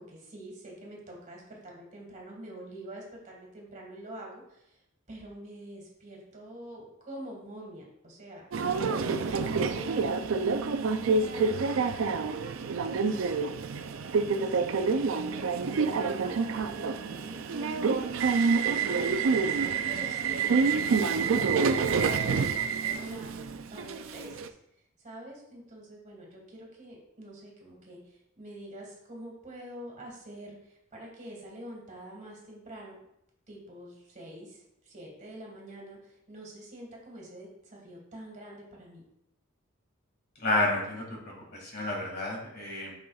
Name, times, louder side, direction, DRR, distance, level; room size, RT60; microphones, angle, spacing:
voice 1, 0.0-4.8 5.1-8.4 9.0-13.3 14.3-24.6 25.0-33.0 33.5-39.1, right 1 dB, 40° right, -2 dB, 1.8 m, -46 dB
Subway metro underground, 8.5-24.5, right 5 dB, 70° right, 0.4 m, -27 dB
voice 2, 40.4-42.9, left 2 dB, 50° left, -2 dB, 2.0 m, -30 dB
7.6 x 5.5 x 2.4 m, 0.80 s
head